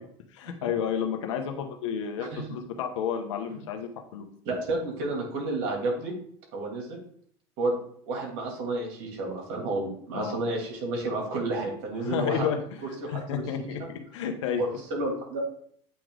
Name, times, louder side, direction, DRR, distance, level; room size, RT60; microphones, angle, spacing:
voice 1, 0.3-4.3 10.1-10.4 12.0-12.8 13.1-14.6, left 8 dB, 85° left, 4 dB, 1.0 m, -31 dB
voice 2, 4.4-6.1 6.5-7.0 7.6-7.8 8.1-12.5 13.0-13.8 14.6-15.4, right 2 dB, 65° right, -1 dB, 2.6 m, -31 dB
8.3 x 3.1 x 3.8 m, 0.63 s
supercardioid pair, 105°, 15 cm